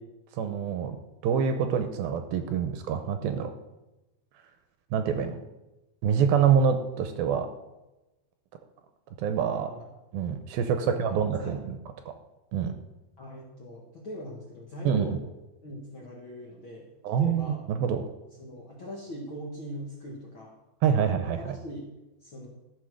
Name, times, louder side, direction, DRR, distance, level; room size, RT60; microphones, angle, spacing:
voice 1, 0.4-1.0 1.2-3.5 4.9-5.4 6.0-7.5 9.2-9.7 10.1-11.8 12.1-12.2 12.5-12.7 14.8-15.2 17.0-18.1 20.8-21.5, right 7 dB, 80° right, 7 dB, 2.4 m, -26 dB
voice 2, 9.5-9.9 10.8-11.6 13.2-15.2 15.6-17.6 18.4-20.5 21.2-21.9 22.2-22.5, equal, 50° left, -3 dB, 1.6 m, -41 dB
14.0 x 5.9 x 6.3 m, 1.0 s
omnidirectional pair, 4.7 m